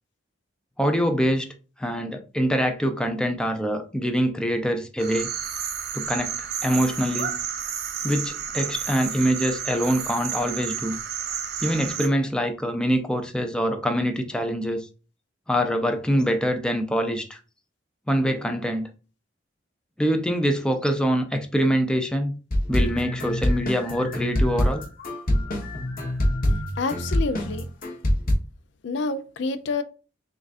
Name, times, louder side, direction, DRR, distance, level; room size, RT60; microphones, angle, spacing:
voice 1, 0.8-1.5 1.8-5.3 5.9-7.3 8.0-11.0 11.6-14.9 15.5-17.4 18.1-18.9 20.0-22.4 22.7-24.8, equal, 5° left, 0.4 m, -24 dB
sound 1, 5.0-12.1, right 8 dB, 55° right, 0.7 m, -31 dB
sound 2, 22.5-28.3, left 1 dB, 50° left, 1.0 m, -24 dB
voice 2, 26.8-27.7 28.8-29.8, left 3 dB, 65° left, 0.4 m, -28 dB
6.3 x 2.4 x 2.5 m
head